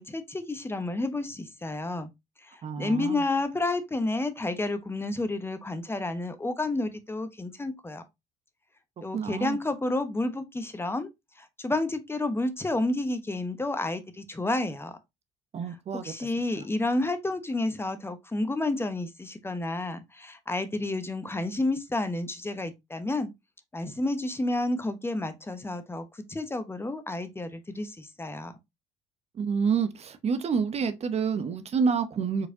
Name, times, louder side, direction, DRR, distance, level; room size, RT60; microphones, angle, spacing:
voice 1, 0.0-2.1 2.4-8.0 9.0-11.1 11.4-15.0 15.7-23.3 23.7-28.5, left 2 dB, 15° left, 0.9 m, -30 dB
voice 2, 2.6-3.2 9.1-9.6 15.5-16.1 29.4-32.5, right 6 dB, 40° right, 0.8 m, -28 dB
4.7 x 4.2 x 2.7 m
hypercardioid pair, 65°, 16 cm